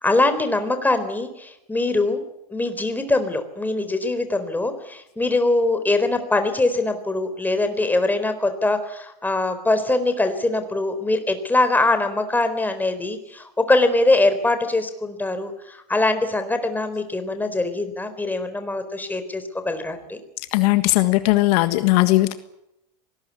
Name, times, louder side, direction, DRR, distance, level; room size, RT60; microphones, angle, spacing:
voice 1, 0.0-2.2 2.5-20.2, left 2 dB, 10° left, 8 dB, 4.1 m, -22 dB
voice 2, 20.5-22.3, left 19 dB, 65° left, 10 dB, 1.7 m, -18 dB
24.5 x 19.5 x 8.4 m, 0.84 s
hypercardioid pair, 110°, 21 cm